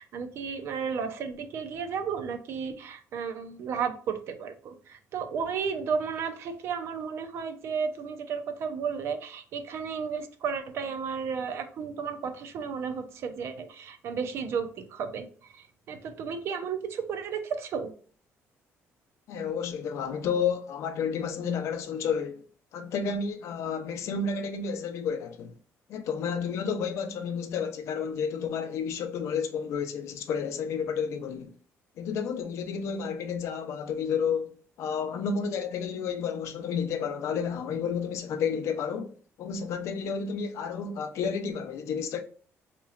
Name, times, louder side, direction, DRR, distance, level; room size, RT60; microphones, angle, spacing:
voice 1, 0.0-17.9, right 6 dB, 55° right, 0.5 m, -33 dB
voice 2, 19.3-22.4 22.7-25.5 25.9-31.5 32.0-34.5 34.8-42.2, left 6 dB, 65° left, 0.5 m, -31 dB
4.0 x 3.0 x 2.4 m
cardioid pair, 170°, 5 cm